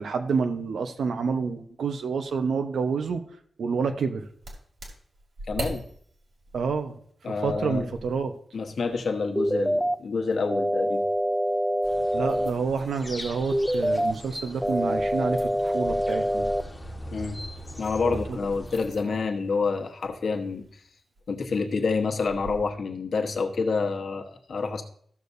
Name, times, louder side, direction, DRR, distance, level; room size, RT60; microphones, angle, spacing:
voice 1, 0.0-3.2 3.6-4.3 6.5-7.0 7.3-8.4 12.1-16.5 18.0-18.4, right 5 dB, 90° right, 7 dB, 0.9 m, -28 dB
sound 1, 4.2-22.7, right 1 dB, 60° right, 2.7 m, -45 dB
voice 2, 5.5-5.8 7.2-7.9 8.5-11.0 17.1-17.4 17.8-20.8 21.3-24.8, left 4 dB, 60° left, 2 dB, 1.2 m, -28 dB
sound 2, 9.4-10.0 10.5-12.5 13.5-14.1 14.6-16.6, equal, 5° right, 0.3 m, -25 dB
sound 3, 11.8-18.9, equal, 15° left, 1.2 m, -40 dB
14.5 x 6.8 x 2.7 m, 0.63 s
wide cardioid pair, 165°, 0 cm